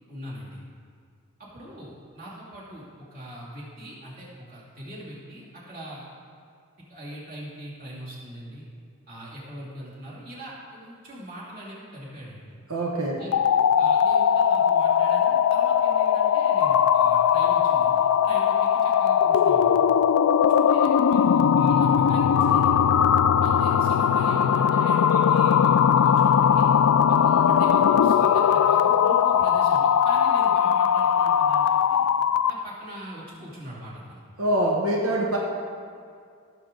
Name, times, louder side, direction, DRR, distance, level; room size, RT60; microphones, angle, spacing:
voice 1, 0.1-0.6 1.4-6.0 6.9-8.7 9.1-12.5 13.1-13.4 13.8-19.7 20.4-23.0 23.4-26.7 27.1-32.0 32.5-34.2, equal, 40° right, -7 dB, 2.7 m, -41 dB
voice 2, 12.7-13.2 34.4-35.4, right 1 dB, 85° right, -2 dB, 1.1 m, -24 dB
sound 1, 13.2-32.6, left 8 dB, 90° left, 0.3 m, -20 dB
16.0 x 6.9 x 3.8 m, 2.3 s
head